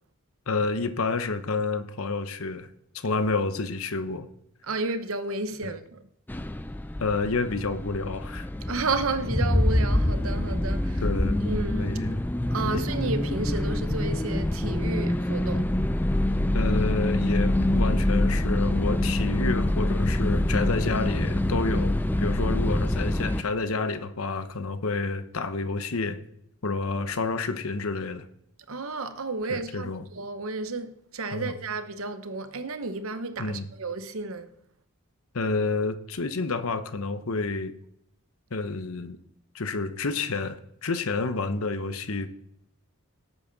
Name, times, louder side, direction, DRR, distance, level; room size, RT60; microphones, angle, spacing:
voice 1, 0.5-2.7 2.9-4.3 5.6-5.7 7.0-8.5 11.0-11.4 11.8-12.2 12.7-12.9 16.5-26.2 26.6-28.3 29.5-30.1 31.3-31.5 33.4-33.7 35.3-37.7 38.5-39.2 39.5-40.6 40.8-42.3, left 3 dB, 80° left, 0.9 m, -29 dB
voice 2, 4.6-6.0 8.7-11.0 11.4-11.9 12.5-15.7 28.7-34.5, right 3 dB, 75° right, 0.9 m, -32 dB
sound 1, 6.3-23.4, left 1 dB, 10° left, 0.3 m, -25 dB
17.5 x 8.1 x 4.0 m
head